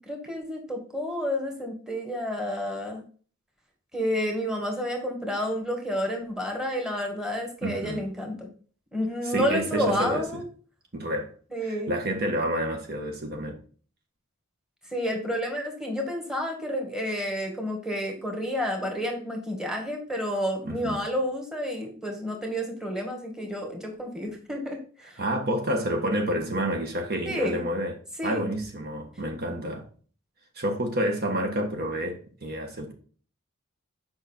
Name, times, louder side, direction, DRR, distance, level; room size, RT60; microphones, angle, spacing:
voice 1, 0.1-3.0 3.9-8.5 8.9-10.4 11.5-11.9 14.9-25.2 27.2-27.6 28.2-28.5, equal, 5° right, 1.9 m, -30 dB
voice 2, 7.6-8.0 9.2-10.4 10.9-11.3 11.6-13.6 20.6-21.0 25.2-27.9 28.2-29.9 30.5-32.9, right 1 dB, 50° right, 1.6 m, -29 dB
8.0 x 5.6 x 4.5 m
head